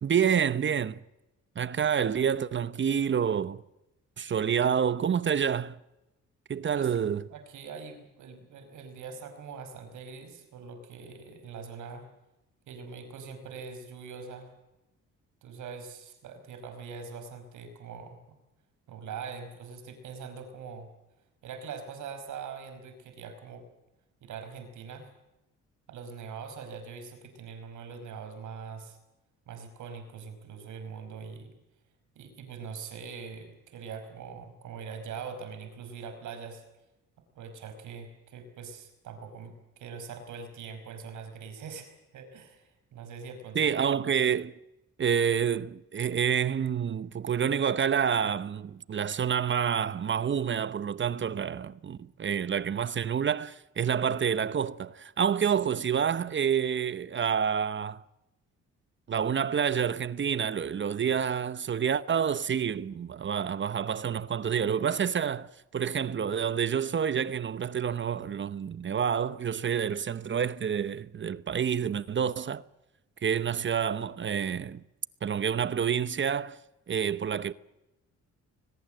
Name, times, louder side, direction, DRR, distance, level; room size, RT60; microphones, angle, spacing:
voice 1, 0.0-1.0 1.6-3.6 4.2-5.8 6.5-7.2 43.5-44.6 45.0-58.0 59.1-72.6 73.2-74.8 75.2-76.6 76.9-77.5, right 7 dB, 40° right, 0.8 m, -28 dB
voice 2, 7.3-12.0 12.7-14.5 15.4-18.2 18.9-20.9 21.4-23.6 24.2-25.1 25.9-29.0 29.5-31.5 32.1-36.6 37.3-43.6, right 5 dB, 80° right, 5.1 m, -42 dB
22.0 x 21.0 x 7.7 m
cardioid pair, 90°, 30 cm